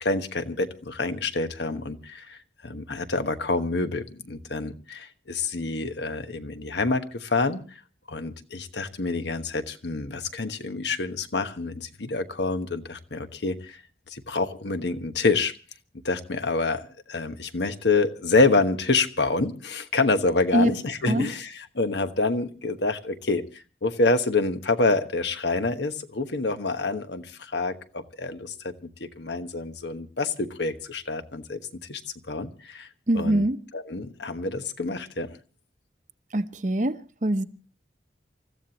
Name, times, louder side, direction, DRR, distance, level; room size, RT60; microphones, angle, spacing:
voice 1, 0.0-2.4 2.6-7.6 8.1-13.8 14.1-15.5 16.0-23.4 23.8-28.7 29.0-31.6 31.9-32.0 32.3-32.9 33.1-33.4 33.7-35.4, left 3 dB, 70° left, 1.3 m, -27 dB
voice 2, 33.1-33.6 36.3-37.4, right 1 dB, 40° right, 0.8 m, -24 dB
28.5 x 14.5 x 2.9 m
head